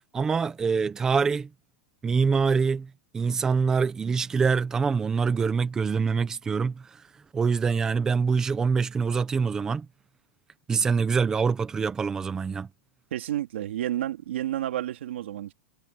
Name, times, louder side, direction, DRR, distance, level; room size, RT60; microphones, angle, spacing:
voice 1, 0.1-1.5 2.0-7.0 7.3-9.9 10.7-12.7, right 5 dB, 10° right, 0.8 m, -25 dB
voice 2, 13.1-15.5, right 12 dB, 80° right, 3.1 m, -30 dB
supercardioid pair, 175°, 6 cm